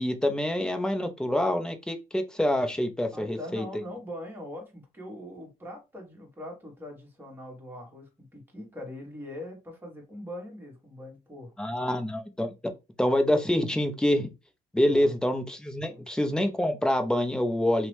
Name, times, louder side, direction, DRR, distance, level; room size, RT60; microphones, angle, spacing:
voice 1, 0.0-3.7 11.6-12.5 13.0-14.3 14.7-17.9, left 1 dB, 5° left, 0.4 m, -26 dB
voice 2, 3.1-12.0 14.9-15.1 15.9-16.0, left 1 dB, 10° right, 1.2 m, -42 dB
2.7 x 2.0 x 3.1 m
cardioid pair, 110°, 17 cm